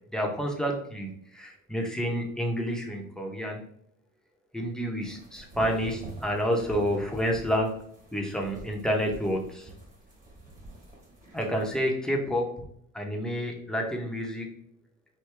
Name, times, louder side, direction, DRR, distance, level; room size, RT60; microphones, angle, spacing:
voice 1, 0.1-3.6 4.5-7.8 8.1-9.7 11.3-12.5 12.9-14.6, equal, ahead, 0 dB, 0.9 m, -29 dB
sound 1, 5.0-11.8, right 2 dB, 25° right, 1.4 m, -46 dB
4.7 x 2.7 x 3.3 m, 0.69 s
cardioid pair, 115°, 32 cm